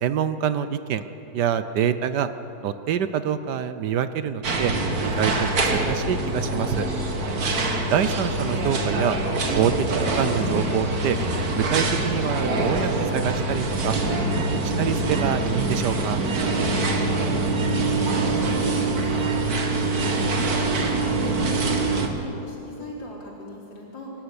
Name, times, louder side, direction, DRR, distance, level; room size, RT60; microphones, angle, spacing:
voice 1, 0.0-1.0 1.3-2.3 2.6-4.7 5.0-6.9 7.9-9.2 9.5-9.9 10.1-11.2 11.6-14.0 14.4-16.2, right 9 dB, 70° right, 12 dB, 1.3 m, -26 dB
sound 1, 4.4-22.1, right 2 dB, 55° right, 2.0 m, -24 dB
voice 2, 17.5-19.4 19.8-24.1, left 2 dB, 80° left, -4 dB, 5.1 m, -38 dB
23.5 x 12.5 x 9.7 m, 3.0 s
omnidirectional pair, 2.0 m